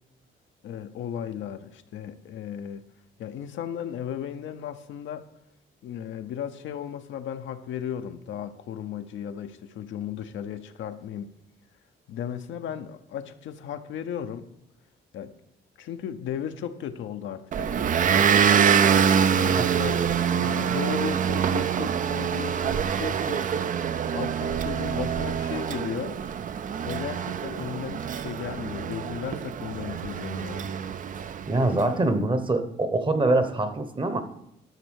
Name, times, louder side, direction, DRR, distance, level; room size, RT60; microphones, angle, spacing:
voice 1, 0.6-2.8 3.2-5.3 5.8-11.3 12.1-14.5 15.1-15.3 15.8-17.9 19.3-20.0 20.3-23.5 24.1-26.2 26.8-30.7, left 9 dB, 75° left, 8 dB, 0.7 m, -35 dB
Motor vehicle (road) / Engine, 17.5-31.7, right 8 dB, 40° right, 0.4 m, -25 dB
voice 2, 31.5-34.2, right 2 dB, 25° right, 10 dB, 0.9 m, -24 dB
11.0 x 4.1 x 6.4 m, 0.80 s
cardioid pair, 90°, 20 cm